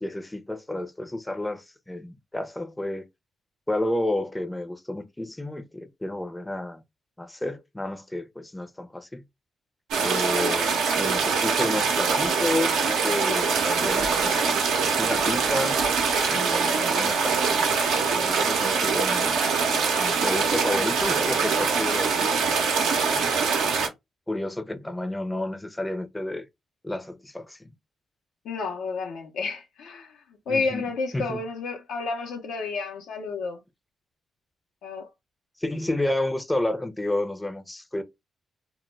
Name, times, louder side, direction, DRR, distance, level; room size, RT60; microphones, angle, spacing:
voice 1, 0.0-3.1 3.7-6.8 7.2-9.2 10.0-14.6 14.9-15.8 16.3-17.4 17.9-19.4 20.0-22.3 23.1-23.5 24.3-26.5 26.8-27.7 30.5-30.8 31.1-31.4 35.6-38.0, left 1 dB, 15° left, 0.5 m, -31 dB
sound 1, 9.9-23.9, right 5 dB, 85° right, 0.6 m, -23 dB
voice 2, 28.4-30.1 30.5-33.6 34.8-35.1, left 4 dB, 80° left, 0.6 m, -30 dB
2.1 x 2.1 x 3.0 m
supercardioid pair, 55°, 0 cm